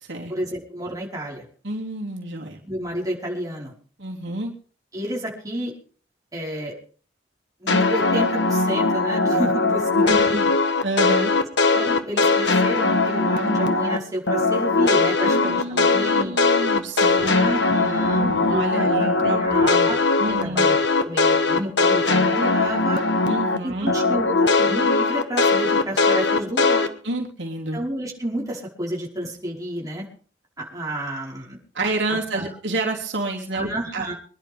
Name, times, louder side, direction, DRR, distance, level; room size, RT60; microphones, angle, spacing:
voice 1, 0.3-1.5 2.6-3.7 4.9-5.7 6.3-6.7 7.6-10.3 11.7-16.3 17.1-23.0 23.6-26.9 27.7-30.1 30.6-31.6 32.1-32.5 33.5-34.1, right 1 dB, 20° right, -3 dB, 5.0 m, -30 dB
voice 2, 1.6-2.6 4.0-4.5 9.9-10.5 10.8-11.3 15.2-20.7 23.3-23.9 27.0-27.8 31.7-34.1, right 2 dB, 85° right, -1 dB, 3.4 m, -29 dB
sound 1, 7.7-14.0 14.3-23.6 23.9-26.9, left 3 dB, 70° left, 1.5 m, -20 dB
25.0 x 11.0 x 3.6 m, 0.43 s
head